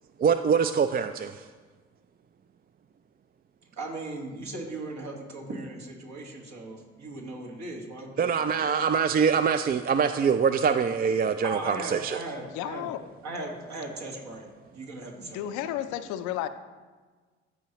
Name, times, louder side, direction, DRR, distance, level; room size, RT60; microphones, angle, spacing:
voice 1, 0.2-1.5 8.2-12.2, right 6 dB, 30° right, 9 dB, 0.4 m, -24 dB
voice 2, 3.7-8.3 11.4-12.9 13.2-14.5 14.7-15.5, right 2 dB, 65° right, 0 dB, 1.7 m, -38 dB
voice 3, 12.5-13.0 15.2-16.5, left 12 dB, 70° left, 11 dB, 0.5 m, -32 dB
13.5 x 4.7 x 3.0 m, 1.4 s
hypercardioid pair, 45°, 30 cm